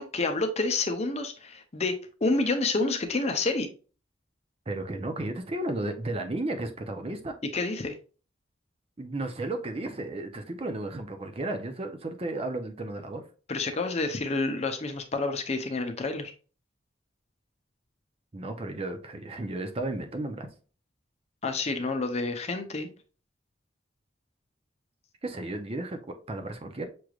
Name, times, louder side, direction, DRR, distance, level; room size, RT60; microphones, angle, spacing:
voice 1, 0.0-3.7 7.5-7.9 13.5-16.3 21.4-22.9, left 3 dB, 35° left, 0.6 m, -29 dB
voice 2, 4.7-7.4 9.0-13.3 18.3-20.5 25.2-26.9, right 2 dB, 30° right, 0.6 m, -34 dB
6.0 x 3.2 x 2.4 m
head